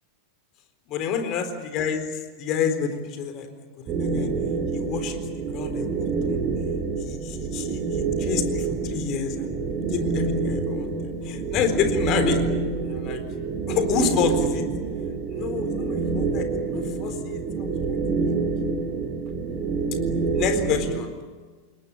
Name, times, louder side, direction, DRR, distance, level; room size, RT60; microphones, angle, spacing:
voice 1, 0.9-4.3 4.7-5.2 5.5-6.4 7.0-9.5 9.9-10.9 11.2-12.4 12.8-13.2 13.7-14.6 15.3-18.0 20.4-21.1, left 6 dB, 35° left, 8 dB, 4.0 m, -28 dB
sound 1, 3.9-21.0, right 4 dB, 30° right, 6.4 m, -27 dB
29.0 x 21.5 x 8.8 m, 1.4 s
figure-of-eight pair, 90°, 0 cm